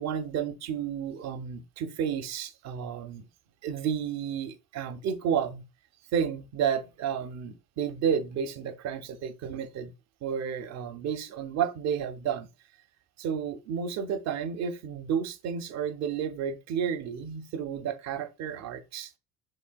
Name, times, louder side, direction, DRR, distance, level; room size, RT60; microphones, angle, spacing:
voice 1, 0.0-3.3 3.6-5.6 6.1-9.9 10.2-12.5 13.2-19.1, right 7 dB, 40° right, 0.6 m, -31 dB
3.8 x 3.2 x 2.3 m
figure-of-eight pair, 60°, 42 cm